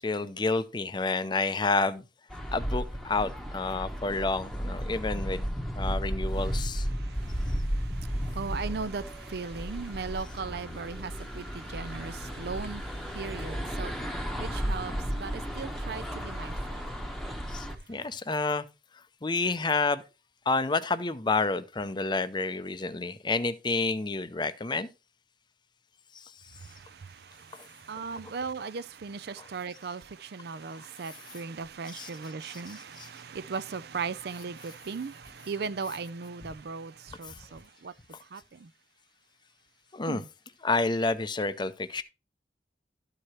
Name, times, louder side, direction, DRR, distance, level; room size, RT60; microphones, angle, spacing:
voice 1, 0.0-2.0 2.5-5.5 5.8-6.9 17.5-18.7 19.2-20.0 20.5-24.9 26.1-26.3 29.4-29.5 31.9-32.1 32.4-33.1 39.9-40.2 40.6-42.0, left 3 dB, 25° left, 0.6 m, -29 dB
Old Street - Music from Council Estate, 2.3-17.8, equal, ahead, 1.0 m, -34 dB
voice 2, 6.9-16.8 26.6-37.9 38.3-38.7 40.1-40.3, right 5 dB, 60° right, 0.5 m, -38 dB
12.5 x 4.9 x 4.3 m
head